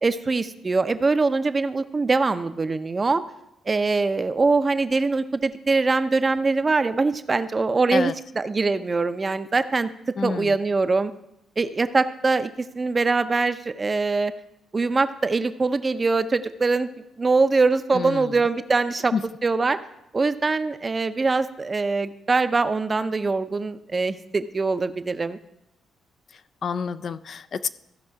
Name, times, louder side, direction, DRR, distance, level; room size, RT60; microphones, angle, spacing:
voice 1, 0.0-3.2 3.7-9.9 10.2-11.1 11.6-12.5 12.8-14.3 14.7-16.9 17.2-19.1 19.4-19.8 20.1-25.4, right 3 dB, 30° right, 11 dB, 0.6 m, -23 dB
voice 2, 10.2-10.6 17.9-18.5 19.1-19.2 26.3-27.7, left 5 dB, 50° left, 12 dB, 0.4 m, -28 dB
15.0 x 5.4 x 4.8 m, 0.84 s
cardioid pair, 90°, 0 cm